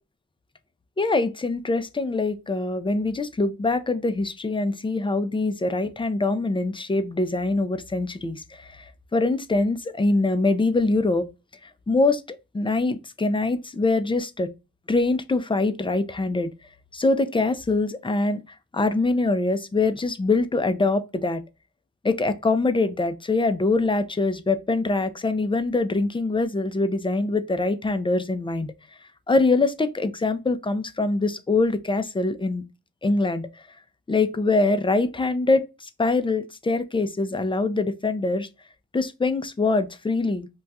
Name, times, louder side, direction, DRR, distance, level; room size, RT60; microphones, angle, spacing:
voice 1, 1.0-11.3 11.6-14.5 14.9-16.5 16.9-21.4 22.0-28.7 29.3-32.6 33.0-33.5 34.1-38.5 38.9-40.5, left 3 dB, 15° left, 0.3 m, -24 dB
2.3 x 2.3 x 4.0 m
cardioid pair, 60°, 37 cm